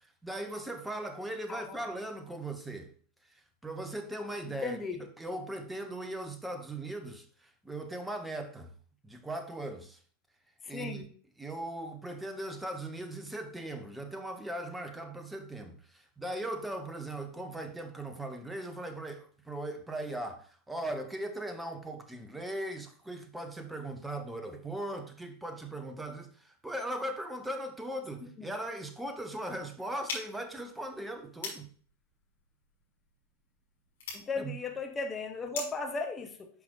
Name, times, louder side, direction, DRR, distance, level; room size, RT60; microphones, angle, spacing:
voice 1, 0.2-2.9 3.6-8.7 9.0-10.0 10.7-11.1 11.4-31.7 34.4-34.5, right 1 dB, 5° right, 0.9 m, -39 dB
voice 2, 1.5-1.9 4.6-5.0 10.6-11.1 28.4-28.5 34.1-36.5, left 4 dB, 20° left, 1.0 m, -36 dB
sound 1, 30.0-35.9, left 4 dB, 60° left, 2.7 m, -44 dB
11.0 x 5.2 x 2.4 m
figure-of-eight pair, 90°, 0 cm